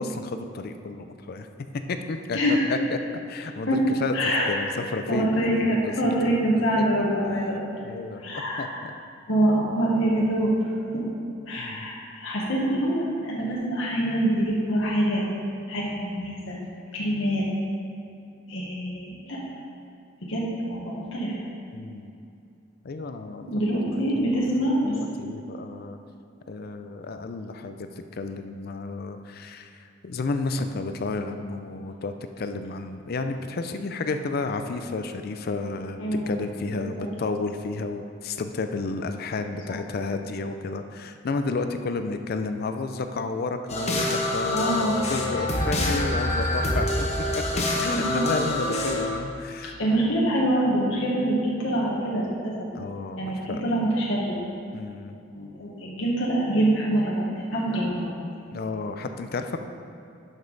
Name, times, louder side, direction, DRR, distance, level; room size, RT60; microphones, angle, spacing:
voice 1, 0.0-1.5 1.7-3.0 3.3-4.1 4.5-5.8 6.2-6.4 7.8-8.9 11.6-11.9 21.7-22.1 22.8-23.4 24.1-26.0 26.5-27.9 28.1-49.8 52.7-53.6 54.7-55.2 58.5-59.6, left 3 dB, 55° left, 7 dB, 0.4 m, -32 dB
voice 2, 2.3-2.7 3.7-3.8 4.1-4.5 5.1-7.8 8.2-8.7 9.3-10.5 10.9-11.0 11.5-15.2 15.7-16.6 16.9-17.4 18.5-19.4 20.2-21.4 23.4-25.0 36.0-36.4 36.7-36.8 44.5-45.0 47.9-48.2 49.8-52.7 53.2-54.3 55.3-57.2 57.5-58.1, right 1 dB, 90° left, -5 dB, 1.3 m, -25 dB
sound 1, 43.7-49.1, left 1 dB, 35° left, 1.0 m, -26 dB
11.5 x 5.3 x 3.9 m, 2.6 s
head